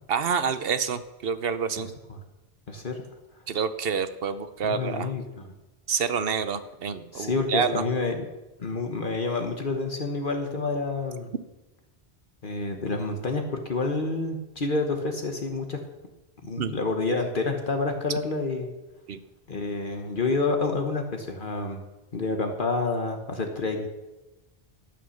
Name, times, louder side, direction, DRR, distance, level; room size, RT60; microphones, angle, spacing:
voice 1, 0.1-1.9 3.5-5.1 5.9-7.8 16.6-16.7 19.1-19.2, right 6 dB, 70° right, 11 dB, 1.0 m, -28 dB
voice 2, 1.8-2.2 2.7-3.0 4.6-5.5 7.1-8.2 8.6-11.3 12.4-15.8 16.4-18.7 19.5-21.8 22.1-23.9, left 3 dB, 55° left, 4 dB, 1.3 m, -28 dB
13.0 x 8.6 x 6.4 m, 1.1 s
omnidirectional pair, 1.0 m